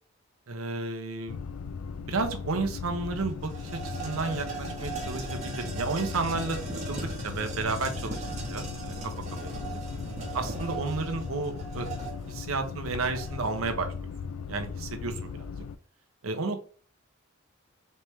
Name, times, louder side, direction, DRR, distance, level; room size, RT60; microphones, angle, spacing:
voice 1, 0.5-1.4 2.1-3.5 3.8-6.6 6.9-8.2 8.5-8.9 9.4-9.6 10.3-13.9 14.5-15.5 16.2-16.6, right 3 dB, 85° right, 6 dB, 0.8 m, -32 dB
sound 1, 1.3-15.8, left 5 dB, 90° left, 0.4 m, -38 dB
sound 2, 2.6-2.7 2.9-13.6, right 3 dB, 35° right, 1.1 m, -39 dB
4.3 x 3.4 x 3.1 m, 0.42 s
head